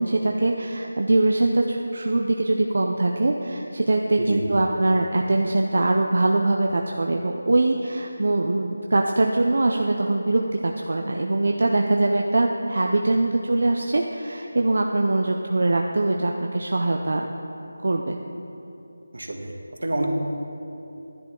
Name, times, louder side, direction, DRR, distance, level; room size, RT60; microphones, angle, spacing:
voice 1, 0.0-17.2 17.8-18.2, right 2 dB, 50° right, 1 dB, 0.5 m, -22 dB
voice 2, 19.1-19.5 19.8-20.1, right 2 dB, 70° right, 2 dB, 1.5 m, -27 dB
12.0 x 10.5 x 3.7 m, 2.9 s
figure-of-eight pair, 180°, 0 cm